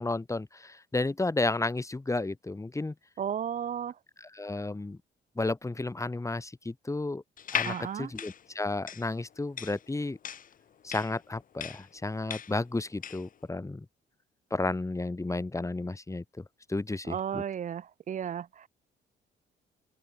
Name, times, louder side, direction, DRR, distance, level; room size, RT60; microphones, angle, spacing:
voice 1, 0.0-2.9 4.2-5.0 5.4-7.2 7.5-10.2 10.8-13.9 14.5-16.4 16.7-17.4, left 2 dB, 15° left, 1.9 m, -32 dB
voice 2, 3.2-3.9 7.6-8.1 17.1-18.7, right 8 dB, 40° right, 0.5 m, -34 dB
sound 1, 7.4-13.3, left 8 dB, 45° left, 0.7 m, -37 dB
open air
cardioid pair, 90°, 20 cm